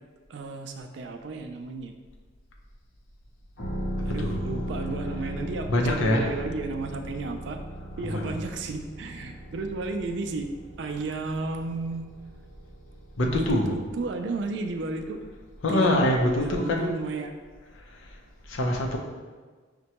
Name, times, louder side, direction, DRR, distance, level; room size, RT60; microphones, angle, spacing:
voice 1, 0.3-1.9 4.1-7.6 8.0-10.5 10.8-12.1 13.2-15.2 15.7-16.0 16.4-17.4, right 3 dB, 60° right, 6 dB, 0.3 m, -33 dB
sound 1, 3.6-15.1 15.4-15.5, equal, 50° left, 0.8 m, -37 dB
voice 2, 5.7-6.2 8.1-8.3 13.2-13.7 15.6-16.9 18.5-19.0, left 1 dB, 80° left, 1 dB, 0.6 m, -24 dB
6.0 x 2.2 x 2.8 m, 1.4 s
head